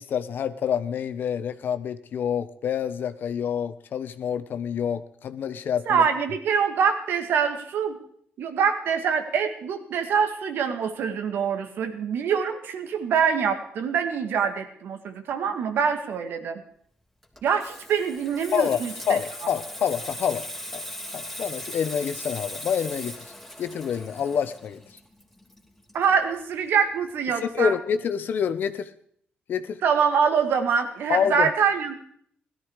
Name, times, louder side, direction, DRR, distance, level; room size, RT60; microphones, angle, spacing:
voice 1, 0.0-6.0 18.5-18.8 19.1-20.4 20.7-20.9 21.1-23.3 23.6-24.8 27.4-28.9 29.5-29.8 31.1-31.5, left 8 dB, 65° left, 12 dB, 1.1 m, -27 dB
voice 2, 5.9-8.0 8.4-16.6 17.4-19.2 25.9-27.7 29.8-31.9, right 6 dB, 75° right, 8 dB, 2.1 m, -24 dB
Water tap faucet / Sink (filling or washing), 17.2-26.5 26.8-27.1, left 1 dB, 5° left, 2.9 m, -39 dB
17.0 x 13.0 x 4.9 m, 0.64 s
cardioid pair, 90°, 4 cm